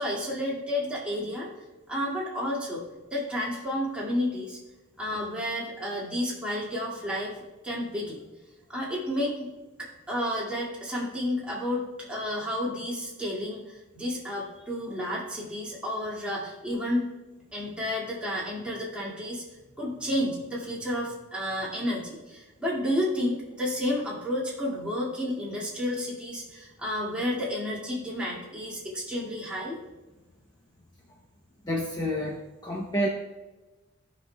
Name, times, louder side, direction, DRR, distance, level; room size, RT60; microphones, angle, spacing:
voice 1, 0.0-1.5 1.9-2.8 3.1-4.6 5.0-7.4 7.6-8.2 8.7-9.5 9.8-17.1 17.5-19.4 19.8-29.8, left 1 dB, 5° right, -6 dB, 2.3 m, -31 dB
voice 2, 31.6-33.1, equal, 20° left, -2 dB, 0.8 m, -29 dB
17.5 x 6.3 x 2.3 m, 1.2 s
head